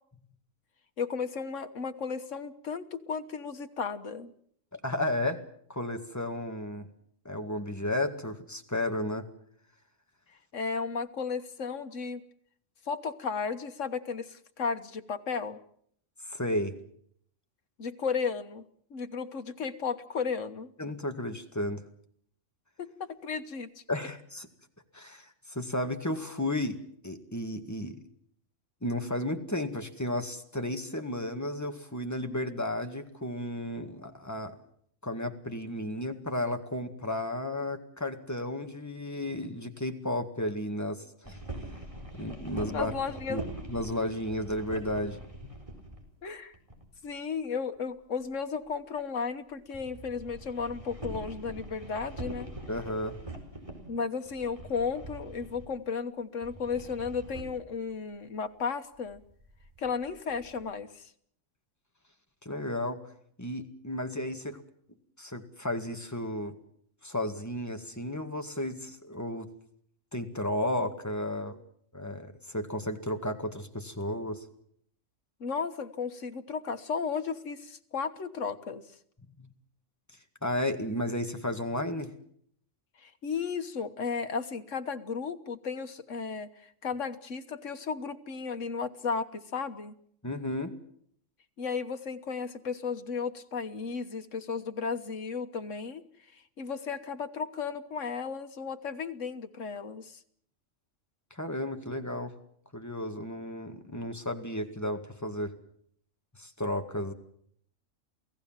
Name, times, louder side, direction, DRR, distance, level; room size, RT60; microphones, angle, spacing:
voice 1, 1.0-4.3 10.5-12.2 12.8-15.6 17.8-18.6 18.9-20.7 22.8-23.8 42.7-43.4 46.2-46.6 47.0-52.5 53.9-59.2 59.8-61.1 75.4-78.9 83.0-89.9 91.6-96.0 96.3-100.2, left 5 dB, 75° left, 8 dB, 1.7 m, -34 dB
voice 2, 4.7-5.4 5.7-6.9 7.3-9.3 16.3-16.7 20.8-21.8 23.9-24.5 24.9-26.8 27.0-28.0 28.8-34.5 35.0-41.4 42.1-42.9 43.3-43.4 43.7-45.2 52.7-53.2 62.4-63.0 63.4-64.6 65.2-66.5 67.0-69.5 70.1-71.6 71.9-74.4 79.4-79.5 80.4-82.1 90.2-90.7 101.3-102.3 102.7-105.5 106.4-107.1, left 1 dB, 15° left, 6 dB, 1.9 m, -33 dB
sound 1, 41.2-46.1 46.5-47.1 49.7-54.0 54.2-55.8 56.4-57.6 58.9-60.7, right 1 dB, 25° right, 4.5 m, -43 dB
28.5 x 17.5 x 7.4 m, 0.66 s
omnidirectional pair, 1.3 m